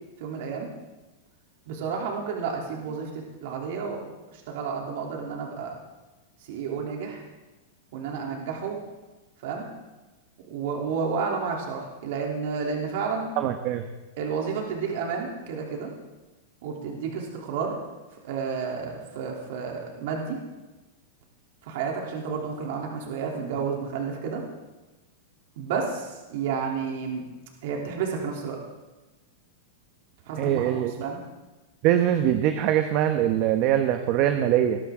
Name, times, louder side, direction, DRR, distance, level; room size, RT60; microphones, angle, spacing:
voice 1, 0.2-0.7 1.7-4.0 4.3-5.7 6.5-7.2 7.9-8.8 9.4-9.6 10.5-13.3 14.2-15.9 16.6-17.7 18.2-20.4 21.6-24.4 25.6-27.3 27.6-28.6 30.2-31.2, right 5 dB, 65° right, -1 dB, 3.3 m, -31 dB
voice 2, 13.4-13.8 30.4-30.9 31.8-34.8, right 11 dB, 50° right, 7 dB, 1.1 m, -22 dB
20.0 x 13.0 x 3.8 m, 1.1 s
hypercardioid pair, 120°, 0 cm